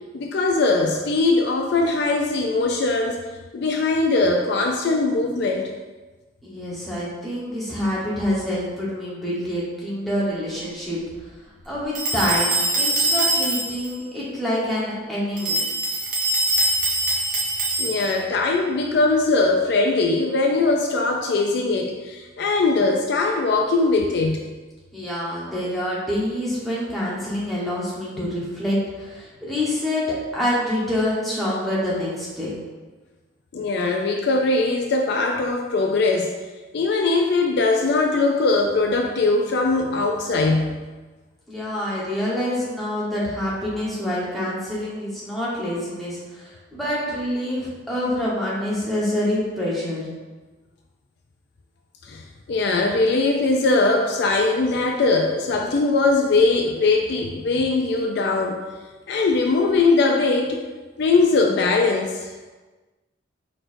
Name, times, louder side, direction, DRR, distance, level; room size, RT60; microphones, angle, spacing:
voice 1, 0.1-3.2 3.5-5.7 17.8-24.5 33.5-36.3 36.7-40.8 52.1-52.2 52.5-58.6 59.1-60.6 61.0-62.3, left 3 dB, 55° left, 2 dB, 0.4 m, -21 dB
voice 2, 6.4-11.0 11.6-15.6 24.9-30.1 30.3-32.5 41.5-50.1, left 1 dB, ahead, -8 dB, 1.1 m, -26 dB
sound 1, 11.9-13.9 15.4-18.3, right 2 dB, 40° right, 0.6 m, -23 dB
4.4 x 4.2 x 2.6 m, 1.3 s
head